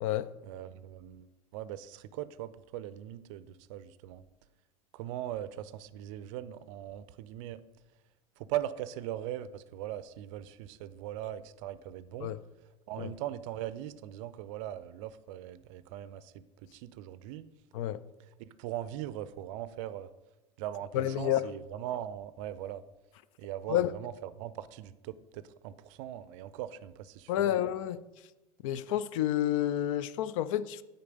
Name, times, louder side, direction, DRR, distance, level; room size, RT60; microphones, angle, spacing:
voice 1, 0.4-4.2 4.9-7.6 8.4-12.3 12.9-17.4 18.4-20.1 20.6-22.8 23.4-27.6, right 12 dB, 55° right, 0.5 m, -40 dB
voice 2, 20.9-21.4 23.7-23.9 27.3-28.0 28.6-30.8, left 12 dB, 55° left, 0.4 m, -29 dB
9.7 x 4.1 x 5.2 m
figure-of-eight pair, 80°, 20 cm